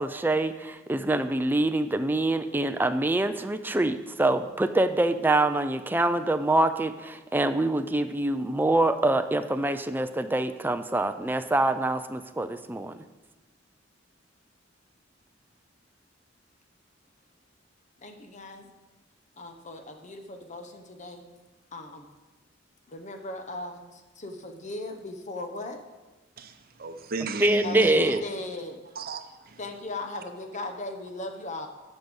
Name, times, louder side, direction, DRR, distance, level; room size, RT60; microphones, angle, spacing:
voice 1, 0.0-13.0 27.4-28.2, right 2 dB, 10° right, 0.4 m, -25 dB
voice 2, 18.0-18.7 19.4-21.2 21.7-22.1 22.9-25.8 27.6-28.8 29.6-31.7, left 2 dB, 40° left, 0.9 m, -38 dB
voice 3, 26.4-28.2 29.0-29.6, right 3 dB, 50° right, 0.8 m, -35 dB
9.5 x 5.4 x 7.0 m
head